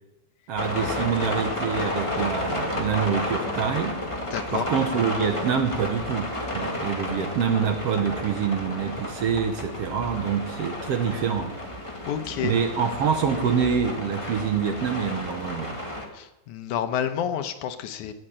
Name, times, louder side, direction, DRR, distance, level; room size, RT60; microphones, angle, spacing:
voice 1, 0.5-4.0 4.5-11.5 12.4-15.8, right 7 dB, 65° right, 7 dB, 1.8 m, -26 dB
sound 1, 0.6-16.1, left 1 dB, 15° left, 1.3 m, -32 dB
voice 2, 4.3-4.7 12.1-12.6 16.1-18.1, left 9 dB, 75° left, 10 dB, 2.3 m, -29 dB
18.5 x 6.6 x 8.8 m, 0.96 s
omnidirectional pair, 3.5 m